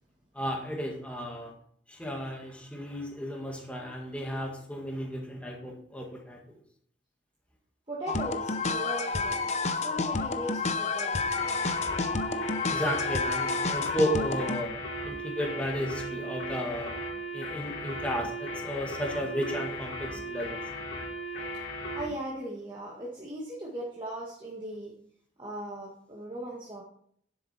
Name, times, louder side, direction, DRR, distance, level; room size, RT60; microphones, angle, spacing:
voice 1, 0.3-1.5 1.9-6.4 11.9-12.0 12.7-14.7 15.0-16.9 17.3-20.6, equal, 5° left, 0 dB, 1.9 m, -33 dB
voice 2, 7.9-11.4 21.9-24.9 25.4-26.8, right 1 dB, 25° right, -4 dB, 1.7 m, -38 dB
sound 1, 8.1-14.6, left 4 dB, 35° left, 0.7 m, -30 dB
sound 2, 11.4-22.1, right 1 dB, 90° left, 3.5 m, -37 dB
10.5 x 7.9 x 4.3 m, 0.63 s
head